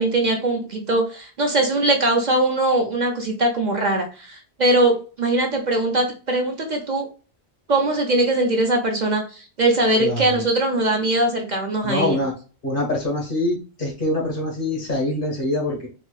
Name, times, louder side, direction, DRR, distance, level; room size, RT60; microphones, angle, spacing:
voice 1, 0.0-7.1 7.7-12.2, right 2 dB, 45° right, 2 dB, 0.7 m, -21 dB
voice 2, 11.8-12.3 12.6-15.9, left 1 dB, 50° left, -2 dB, 1.7 m, -24 dB
4.2 x 2.9 x 2.3 m, 0.36 s
omnidirectional pair, 1.1 m